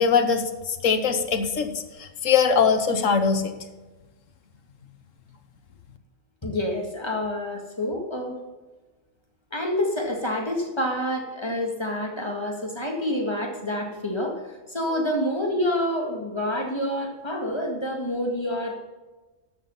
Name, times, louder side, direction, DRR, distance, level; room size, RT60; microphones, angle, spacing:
voice 1, 0.0-3.5, left 6 dB, 80° left, 7 dB, 1.4 m, -22 dB
voice 2, 6.4-8.4 9.5-18.7, left 1 dB, 20° left, 1 dB, 2.0 m, -28 dB
12.5 x 7.4 x 5.4 m, 1.2 s
omnidirectional pair, 1.3 m